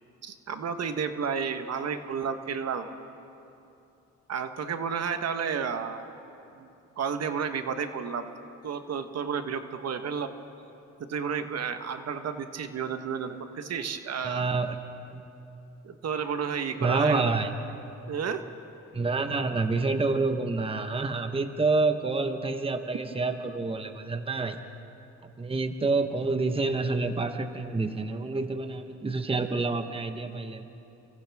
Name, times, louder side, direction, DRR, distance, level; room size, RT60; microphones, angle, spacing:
voice 1, 0.2-2.9 4.3-6.1 6.5-8.3 8.6-10.3 11.0-14.4 15.8-17.3 18.1-18.4, right 6 dB, 55° right, 8 dB, 1.3 m, -32 dB
voice 2, 14.2-14.8 15.1-15.2 16.8-17.5 18.9-24.6 25.2-30.6, right 3 dB, 20° right, 7 dB, 1.1 m, -28 dB
29.5 x 24.5 x 3.6 m, 2.8 s
cardioid pair, 90°, 30 cm